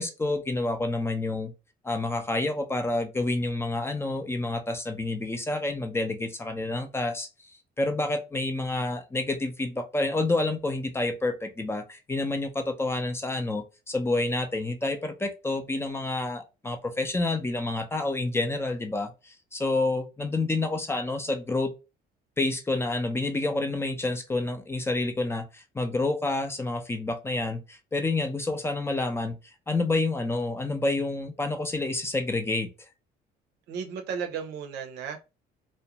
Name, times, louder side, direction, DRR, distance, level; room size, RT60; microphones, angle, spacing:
voice 1, 0.0-1.5 1.8-7.3 7.8-21.7 22.4-29.4 29.7-32.7, left 2 dB, 15° left, 0.4 m, -28 dB
voice 2, 33.7-35.2, right 6 dB, 85° right, 0.6 m, -34 dB
2.4 x 2.1 x 2.8 m
cardioid pair, 110°, 17 cm